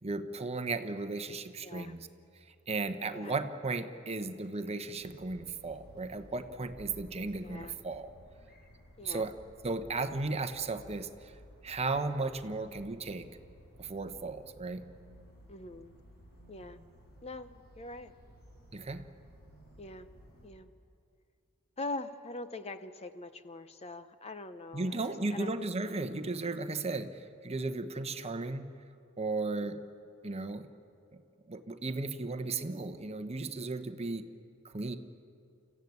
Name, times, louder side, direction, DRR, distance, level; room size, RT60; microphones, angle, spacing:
voice 1, 0.0-2.1 2.7-8.1 9.0-9.3 9.6-11.3 11.6-13.3 13.8-14.8 18.7-19.0 24.7-28.6 29.2-29.9 30.2-30.7 31.1-31.2 31.5-34.3 34.6-35.0, right 3 dB, 30° right, 8 dB, 1.0 m, -35 dB
voice 2, 1.6-1.9 3.1-3.4 7.4-7.8 9.0-9.3 15.5-15.9 16.5-16.8 17.2-18.1 19.8-20.1 20.4-20.7 21.8-25.0 25.3-25.5 29.6-29.8, left 2 dB, 30° left, 11 dB, 0.7 m, -43 dB
sound 1, 5.0-20.5, equal, 45° left, 6.1 m, -56 dB
28.5 x 15.0 x 9.5 m, 2.5 s
head